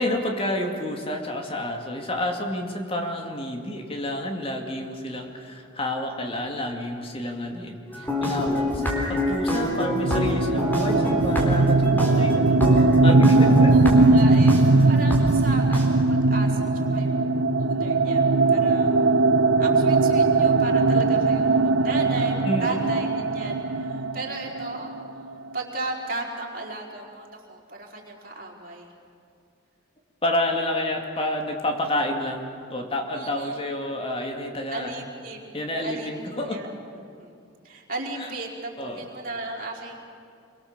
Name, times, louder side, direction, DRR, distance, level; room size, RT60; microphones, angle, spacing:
voice 1, 0.0-13.7 22.4-22.9 30.2-34.9 35.5-36.6 38.2-38.3 38.8-39.0, left 1 dB, 30° left, 3 dB, 2.4 m, -29 dB
sound 1, 7.9-14.6 15.1-15.2 15.7-15.8, left 1 dB, 10° left, 3.9 m, -27 dB
sound 2, 9.7-25.3, right 3 dB, 90° right, 1.0 m, -20 dB
voice 2, 13.7-19.3 19.6-24.9 25.5-28.9 33.1-33.7 34.7-36.7 37.2-37.4 37.6-40.0, right 2 dB, 50° right, -2 dB, 4.5 m, -35 dB
26.5 x 24.0 x 7.3 m, 2.4 s
head